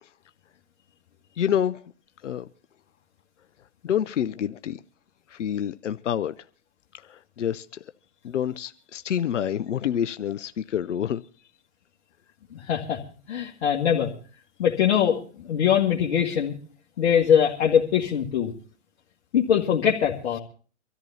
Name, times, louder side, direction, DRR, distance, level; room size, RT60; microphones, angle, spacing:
voice 1, 1.4-1.8 2.2-2.5 3.8-4.8 5.3-6.3 6.9-7.8 8.2-11.2, left 9 dB, 90° left, 0.6 m, -27 dB
voice 2, 12.5-13.0 13.3-14.1 14.6-16.5 17.0-18.5 19.3-20.4, left 8 dB, 70° left, 1.9 m, -22 dB
25.0 x 14.0 x 2.7 m
hypercardioid pair, 110°, 35 cm